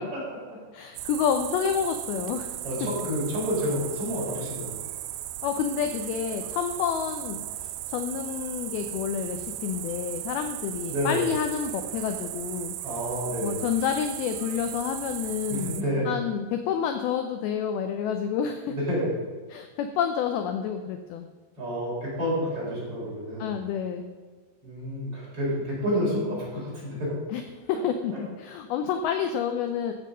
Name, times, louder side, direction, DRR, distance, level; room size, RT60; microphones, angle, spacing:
voice 1, 0.7-2.5 5.4-12.8 13.4-15.7 16.1-18.8 19.5-21.3 23.4-24.1 27.3-27.4 27.7-29.9, left 8 dB, 80° left, 6 dB, 2.3 m, -29 dB
sound 1, 1.0-15.8, right 13 dB, 80° right, 2.2 m, -36 dB
voice 2, 2.6-4.8 10.9-11.2 12.8-13.6 15.5-16.1 18.7-19.1 21.6-23.5 24.6-27.1, equal, 35° right, -6 dB, 4.7 m, -29 dB
14.0 x 7.5 x 5.5 m, 1.4 s
omnidirectional pair, 5.0 m